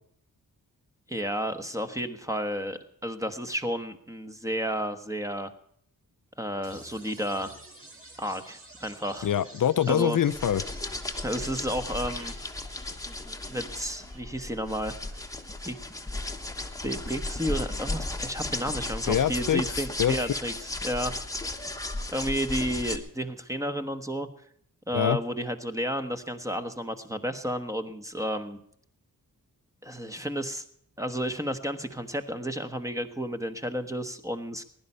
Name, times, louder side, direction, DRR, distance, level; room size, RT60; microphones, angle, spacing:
voice 1, 1.1-5.5 6.4-7.6 8.2-9.3 9.9-10.2 11.2-12.3 13.5-14.9 15.6-15.8 16.8-21.1 22.1-24.3 24.9-28.6 29.8-30.6 31.0-34.6, equal, 10° right, 7 dB, 1.2 m, -32 dB
sound 1, 6.6-20.6, right 1 dB, 40° right, 4.6 m, -52 dB
voice 2, 9.2-10.6 19.1-20.3 24.9-25.2, left 9 dB, 65° left, 12 dB, 0.6 m, -25 dB
sound 2, 10.2-23.0, left 2 dB, 10° left, 1.1 m, -35 dB
20.5 x 11.5 x 5.5 m, 0.67 s
wide cardioid pair, 180°, 35 cm